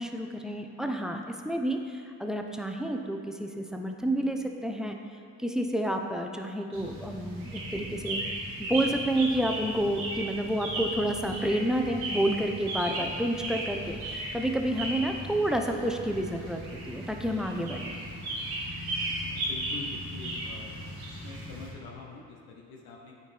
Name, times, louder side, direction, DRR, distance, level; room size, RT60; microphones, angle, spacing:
voice 1, 0.0-5.0 5.4-8.2 8.6-17.9, right 1 dB, ahead, 3 dB, 0.6 m, -30 dB
sound 1, 6.7-21.7, right 1 dB, 85° right, 1.5 m, -36 dB
voice 2, 19.3-20.8 21.2-23.2, left 4 dB, 80° left, -1 dB, 0.8 m, -45 dB
9.0 x 4.4 x 3.3 m, 2.4 s
supercardioid pair, 45°, 37 cm